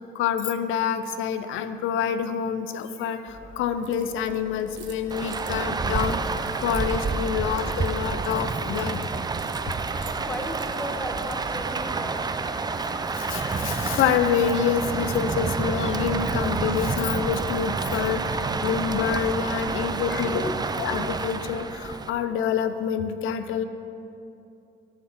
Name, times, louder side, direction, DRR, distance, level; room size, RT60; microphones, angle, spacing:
voice 1, 0.0-9.0 13.2-20.5 20.8-23.6, left 8 dB, 90° left, 10 dB, 0.5 m, -27 dB
sound 1, 3.3-19.7, left 1 dB, 65° left, 2.4 m, -46 dB
Keys jangling, 3.8-11.6, right 8 dB, 65° right, 0.9 m, -49 dB
Rain, 5.1-22.1, right 4 dB, 20° right, 0.4 m, -29 dB
voice 2, 10.2-12.3 19.9-20.6 23.6-23.7, left 1 dB, 5° left, 2 dB, 1.1 m, -35 dB
11.0 x 4.1 x 7.6 m, 2.8 s
cardioid pair, 90°, 20 cm